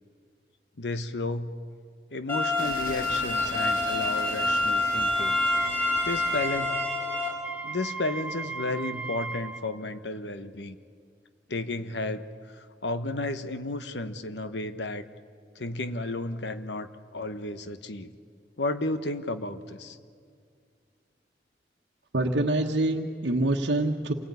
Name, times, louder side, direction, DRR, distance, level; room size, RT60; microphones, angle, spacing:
voice 1, 0.8-1.5 2.1-5.4 6.0-6.8 7.6-10.8 11.5-15.0 15.5-18.1 18.6-20.0, left 2 dB, 80° left, 10 dB, 1.2 m, -33 dB
sound 1, 2.3-7.3, left 2 dB, 15° left, 5.6 m, -27 dB
sound 2, 2.6-9.3, left 2 dB, 50° left, 1.7 m, -41 dB
Wind instrument woodwind instrument, 5.1-9.6, right 4 dB, 5° right, 1.7 m, -36 dB
voice 2, 22.1-24.1, right 2 dB, 85° right, -2 dB, 1.2 m, -25 dB
27.5 x 19.0 x 9.6 m, 2.2 s
head